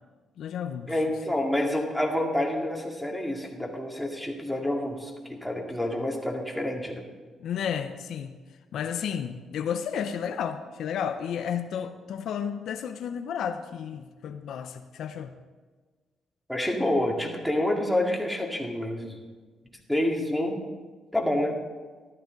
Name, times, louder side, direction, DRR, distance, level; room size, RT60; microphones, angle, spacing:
voice 1, 0.4-0.9 7.4-8.3 8.7-15.3, left 8 dB, 70° left, 8 dB, 0.6 m, -32 dB
voice 2, 0.9-7.0 16.5-19.2 19.9-20.6 21.1-21.6, left 1 dB, ahead, -1 dB, 2.2 m, -28 dB
14.0 x 12.0 x 3.9 m, 1.4 s
cardioid pair, 90°, 0 cm